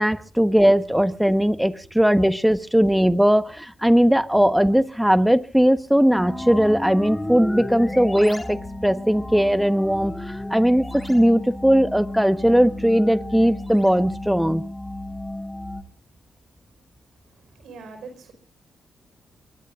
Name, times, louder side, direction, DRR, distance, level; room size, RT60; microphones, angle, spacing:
voice 1, 0.0-10.2 10.5-14.6, equal, 5° right, 12 dB, 1.2 m, -19 dB
sound 1, 6.1-15.8, left 1 dB, 15° left, 2.3 m, -33 dB
voice 2, 17.3-18.3, right 4 dB, 70° right, 7 dB, 5.0 m, -42 dB
24.0 x 20.5 x 2.5 m, 0.37 s
hypercardioid pair, 40°, 0 cm